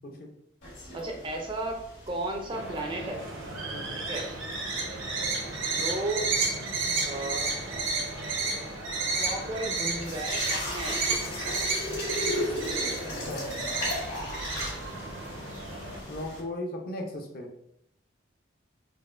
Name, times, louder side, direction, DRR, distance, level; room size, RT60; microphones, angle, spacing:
sound 1, 0.6-16.4, left 1 dB, 65° left, 1.4 m, -38 dB
voice 1, 0.9-1.8 2.1-3.2 3.9-4.3 5.7-6.3 7.0-7.5 9.2-11.2, right 2 dB, 25° right, 2 dB, 0.4 m, -34 dB
sound 2, 2.5-16.0, right 3 dB, 80° right, 0.8 m, -32 dB
voice 2, 13.0-13.5 16.1-17.5, left 1 dB, 45° left, 2 dB, 0.5 m, -37 dB
4.1 x 2.5 x 2.4 m, 0.76 s
head